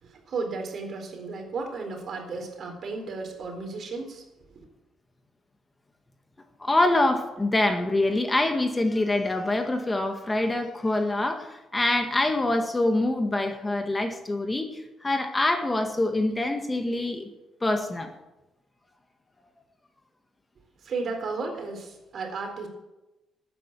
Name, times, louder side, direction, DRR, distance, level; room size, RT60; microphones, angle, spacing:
voice 1, 0.0-4.2 20.8-22.7, right 4 dB, 55° right, 4 dB, 4.0 m, -34 dB
voice 2, 6.6-17.3 17.6-18.1, left 2 dB, 20° left, 5 dB, 1.9 m, -25 dB
13.0 x 9.6 x 9.1 m, 1.0 s
cardioid pair, 90°, 0 cm